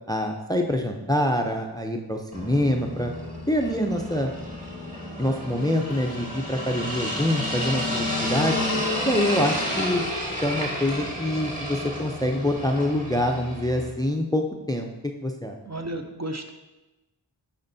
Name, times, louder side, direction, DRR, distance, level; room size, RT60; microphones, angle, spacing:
voice 1, 0.1-3.1 3.5-4.3 5.2-8.6 9.0-10.0 10.4-15.6, left 1 dB, 10° left, 4 dB, 0.5 m, -25 dB
sound 1, 2.3-13.9, left 1 dB, 15° right, 1.8 m, -31 dB
voice 2, 15.7-16.5, right 1 dB, 35° right, 5 dB, 0.6 m, -33 dB
9.6 x 4.4 x 2.6 m, 1.0 s
wide cardioid pair, 45°, 45 cm